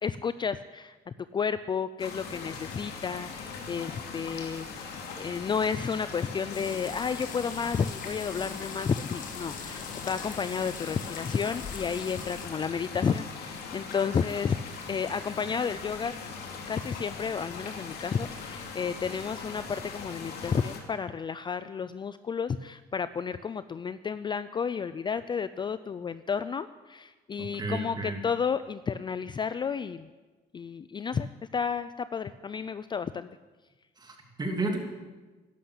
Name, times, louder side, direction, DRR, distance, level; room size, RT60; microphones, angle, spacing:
voice 1, 0.0-1.0 1.3-14.6 14.9-16.4 16.7-30.1 30.5-31.3 31.5-33.3, left 6 dB, 25° left, 14 dB, 0.4 m, -32 dB
sound 1, 2.0-20.8, left 5 dB, 75° left, 2.6 m, -40 dB
sound 2, 6.5-12.5, left 6 dB, 50° left, 1.8 m, -43 dB
voice 2, 27.4-28.2 34.0-34.8, right 2 dB, 25° right, 2 dB, 2.9 m, -32 dB
12.0 x 12.0 x 8.7 m, 1.3 s
cardioid pair, 110°, 17 cm